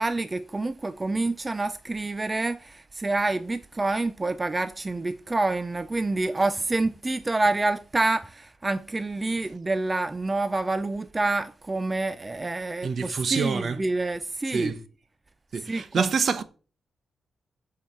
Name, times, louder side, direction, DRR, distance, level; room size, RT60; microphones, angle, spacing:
voice 1, 0.0-14.8 15.6-16.1, right 2 dB, 20° right, 0.4 m, -27 dB
voice 2, 12.8-13.8 14.5-14.8 15.5-16.4, right 5 dB, 50° right, 0.9 m, -26 dB
8.6 x 4.7 x 7.3 m
wide cardioid pair, 140°, 0 cm